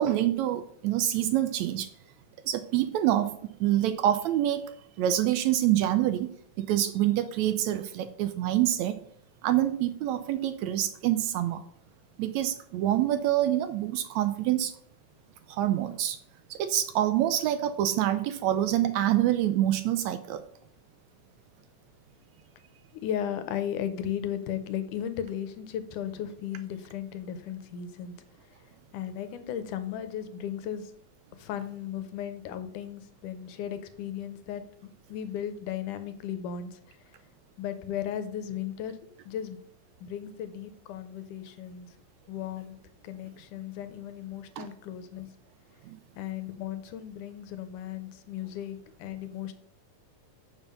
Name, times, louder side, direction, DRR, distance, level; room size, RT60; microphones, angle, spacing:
voice 1, 0.0-1.9 2.4-8.9 9.4-11.6 12.2-14.7 15.5-16.2 16.5-20.4 44.6-44.7 45.9-46.0, right 12 dB, 80° right, 10 dB, 1.7 m, -26 dB
voice 2, 23.0-28.2 28.9-30.9 31.3-34.6 35.1-37.0 37.6-39.0 39.3-39.6 40.0-41.9 42.3-42.8 43.0-45.3 46.2-49.5, left 9 dB, 85° left, 11 dB, 2.3 m, -36 dB
7.0 x 5.5 x 6.8 m, 0.64 s
omnidirectional pair, 3.6 m